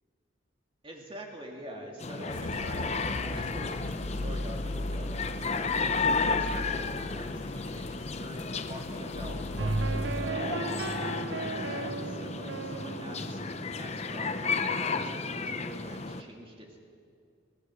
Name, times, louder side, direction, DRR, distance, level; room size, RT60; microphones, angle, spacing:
voice 1, 0.8-16.8, right 1 dB, 30° right, 0 dB, 2.5 m, -45 dB
sound 1, 2.0-16.2, left 4 dB, 35° left, 0.8 m, -33 dB
sound 2, 2.3-10.3, left 2 dB, 80° left, 0.9 m, -38 dB
sound 3, 9.6-14.5, right 3 dB, 65° right, 0.8 m, -35 dB
23.0 x 18.0 x 6.4 m, 2.3 s
head